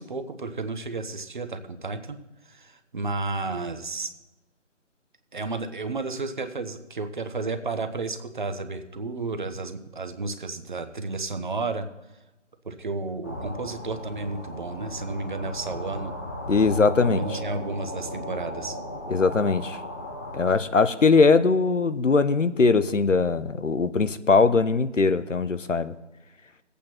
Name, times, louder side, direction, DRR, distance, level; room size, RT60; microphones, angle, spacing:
voice 1, 0.0-2.2 2.5-4.1 5.3-11.9 12.6-16.1 17.0-18.8, right 3 dB, 40° right, 8 dB, 1.0 m, -32 dB
sound 1, 13.2-20.5, left 1 dB, 15° left, 0.9 m, -36 dB
voice 2, 16.5-17.4 19.1-19.8 20.3-25.9, left 4 dB, 90° left, 12 dB, 0.9 m, -21 dB
19.5 x 8.5 x 4.4 m, 1.0 s
figure-of-eight pair, 160°, 36 cm